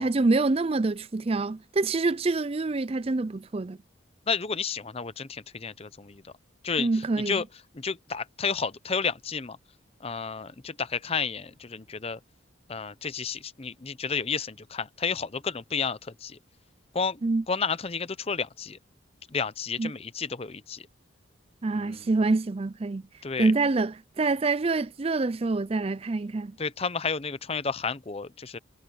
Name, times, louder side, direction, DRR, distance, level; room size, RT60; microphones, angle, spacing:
voice 1, 0.0-3.8 6.8-7.4 17.2-17.4 19.8-19.9 21.6-23.0 23.4-26.6, right 3 dB, 30° right, 0.4 m, -26 dB
voice 2, 4.3-6.3 6.6-6.9 7.3-7.4 7.7-9.6 10.0-12.2 12.7-16.4 16.9-17.2 17.5-18.8 19.3-20.9 21.8-22.0 23.2-23.5 26.6-28.6, left 5 dB, 30° left, 0.6 m, -31 dB
head